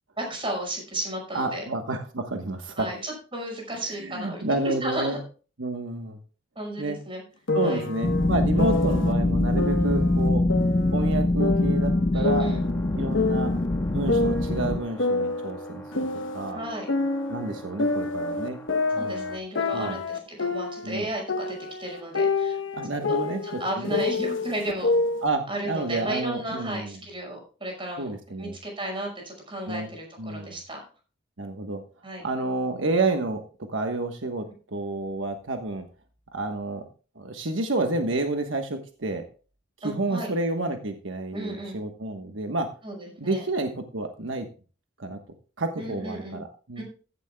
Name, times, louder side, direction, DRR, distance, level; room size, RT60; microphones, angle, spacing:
voice 1, 0.2-1.7 2.8-5.2 6.6-7.2 7.6-7.9 12.1-12.6 16.5-16.9 19.0-22.6 23.1-23.2 23.4-24.9 25.5-28.1 28.4-30.8 32.0-32.2 39.8-40.3 41.3-41.8 42.8-43.4 45.8-46.4 46.8-46.9, right 1 dB, 30° right, 2 dB, 5.7 m, -34 dB
voice 2, 1.3-2.9 3.9-5.2 5.6-6.2 6.8-7.0 7.5-10.4 10.9-12.5 12.9-13.5 13.9-16.1 16.3-16.6 17.3-18.6 18.9-19.3 19.7-20.0 20.8-21.1 22.7-24.0 25.2-26.9 28.0-28.5 29.7-29.9 30.2-30.6 31.4-31.8 32.2-33.4 33.7-34.4 34.7-35.8 36.3-36.9 37.1-39.2 39.8-42.7 43.2-44.5 45.0-45.2 45.6-46.8, right 2 dB, 80° right, 5 dB, 1.3 m, -29 dB
sound 1, 7.5-9.1 9.6-11.1 11.4-13.7 14.1-16.5 16.9-21.0 21.3-25.3, left 3 dB, 75° left, 1.2 m, -27 dB
sound 2, 8.0-14.8, left 2 dB, 35° left, 0.7 m, -24 dB
sound 3, 12.3-19.4, right 1 dB, 15° left, 2.3 m, -43 dB
15.5 x 11.5 x 2.3 m, 0.36 s
head